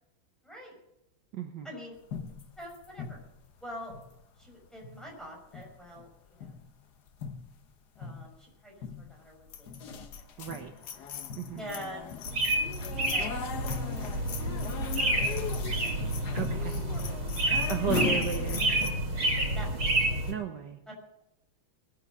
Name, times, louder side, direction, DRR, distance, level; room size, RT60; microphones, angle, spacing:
voice 1, 0.4-0.7 1.6-2.0 2.6-3.2 3.6-3.9 4.4-6.5 8.0-8.7 9.1-10.1 10.3-10.5 11.6-12.1 12.8-14.1 14.4-14.5 15.8-15.9 16.2-17.7 18.6-18.9 19.4-19.9, equal, ahead, -2 dB, 5.7 m, -46 dB
voice 2, 1.3-1.7 10.4-10.7 11.4-11.6 16.3-16.8 17.7-18.7 20.3-20.8, right 8 dB, 60° right, 5 dB, 1.5 m, -34 dB
sound 1, 2.1-4.5 4.8-5.2 5.5-6.1 6.4-6.7 7.1-7.7 8.0-8.4 8.8-9.2 9.5-18.9, left 6 dB, 55° left, 1.5 m, -38 dB
sound 2, 12.3-20.3, right 1 dB, 90° right, 4.0 m, -29 dB
20.5 x 9.5 x 6.4 m, 0.86 s
omnidirectional pair, 2.3 m